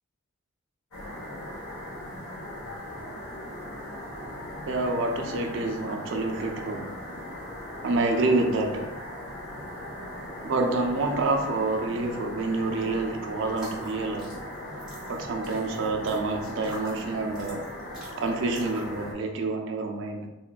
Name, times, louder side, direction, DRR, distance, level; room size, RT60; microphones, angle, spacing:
sound 1, 0.9-19.1, left 1 dB, 85° left, 0.8 m, -39 dB
voice 1, 4.7-6.9 7.8-8.9 10.4-14.4 15.1-17.6 18.2-20.3, right 3 dB, 60° right, 3 dB, 0.4 m, -28 dB
sound 2, 13.5-19.0, right 1 dB, 5° right, 0.8 m, -46 dB
3.5 x 2.3 x 2.2 m, 0.95 s
head